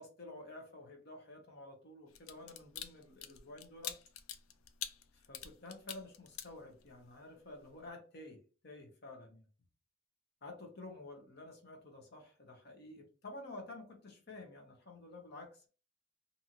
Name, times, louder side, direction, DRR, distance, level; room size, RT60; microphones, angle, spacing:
voice 1, 0.0-4.0 5.1-9.5 10.4-15.7, left 2 dB, 50° left, 3 dB, 0.8 m, -51 dB
sound 1, 2.1-7.1 7.5-7.7, left 10 dB, 75° left, 0.4 m, -46 dB
2.7 x 2.5 x 2.9 m, 0.36 s
head